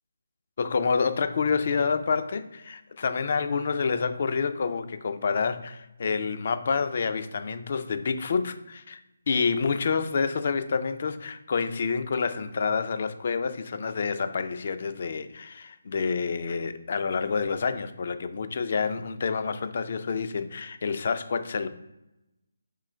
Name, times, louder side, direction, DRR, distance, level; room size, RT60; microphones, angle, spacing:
voice 1, 0.6-9.0 9.3-21.7, left 5 dB, 45° left, 10 dB, 0.4 m, -28 dB
3.7 x 3.0 x 4.3 m, 0.94 s
hypercardioid pair, 165°, 0 cm